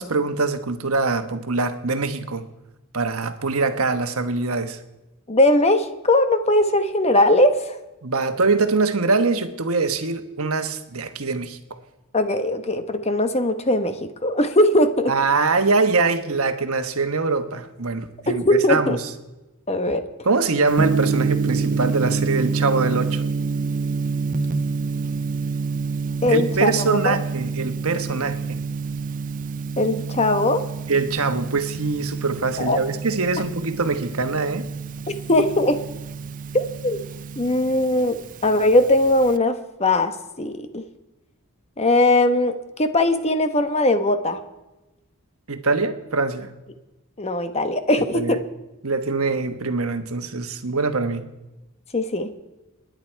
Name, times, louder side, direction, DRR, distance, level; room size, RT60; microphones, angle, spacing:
voice 1, 0.0-2.5 2.9-4.8 8.0-11.6 15.1-18.4 18.7-19.0 20.2-23.2 26.3-28.6 30.9-34.6 45.5-46.5 48.1-48.3 48.8-51.3, right 3 dB, 70° right, 8 dB, 1.3 m, -23 dB
voice 2, 5.3-7.8 12.1-15.1 18.4-19.0 19.7-20.1 26.2-27.2 29.8-30.6 32.6-32.8 35.1-35.8 36.5-37.0 37.4-40.8 41.8-44.4 47.2-48.4 51.9-52.3, left 1 dB, 30° left, 8 dB, 1.1 m, -20 dB
Gong, 20.7-39.3, right 4 dB, 35° right, 0.5 m, -27 dB
27.5 x 10.5 x 4.6 m, 1.0 s
head